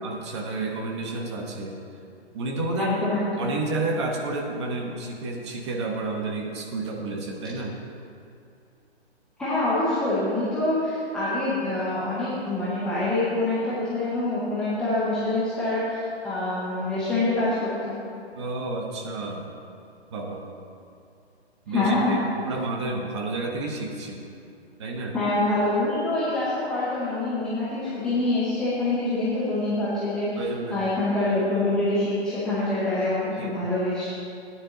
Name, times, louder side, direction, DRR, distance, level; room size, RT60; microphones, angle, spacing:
voice 1, 0.0-1.9 2.3-3.0 3.4-7.8 18.4-19.5 20.1-20.4 21.7-24.3 24.8-25.2 30.4-30.9 33.4-33.6, right 2 dB, 25° right, 1 dB, 1.0 m, -30 dB
voice 2, 2.8-3.5 9.4-18.0 21.7-22.3 25.1-30.4 30.7-34.1, left 2 dB, ahead, -12 dB, 0.6 m, -25 dB
13.5 x 9.9 x 3.9 m, 2.6 s
hypercardioid pair, 155°, 33 cm